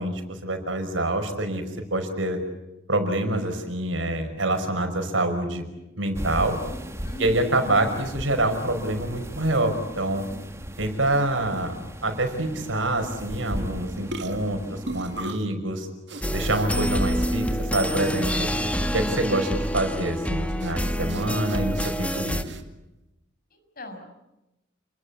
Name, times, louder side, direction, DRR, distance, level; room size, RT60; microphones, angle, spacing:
voice 1, 0.0-1.6 1.9-2.4 2.9-5.6 6.0-6.6 7.2-10.2 10.8-15.9 16.3-18.5 18.9-22.4, right 1 dB, 85° right, 6 dB, 5.6 m, -26 dB
sound 1, 6.1-15.3, equal, 15° right, 2.2 m, -37 dB
voice 2, 7.0-8.0 18.5-18.9 23.5-24.1, right 1 dB, 50° left, 6 dB, 6.4 m, -40 dB
sound 2, 13.5-13.7 14.1-15.5 16.1-16.7 17.0-17.1 18.0-18.5 18.7-18.9 20.6-20.7 21.1-22.6, right 2 dB, 65° right, 2.3 m, -38 dB
sound 3, 16.2-22.4, equal, 5° left, 1.6 m, -27 dB
29.5 x 22.0 x 8.3 m, 0.95 s
head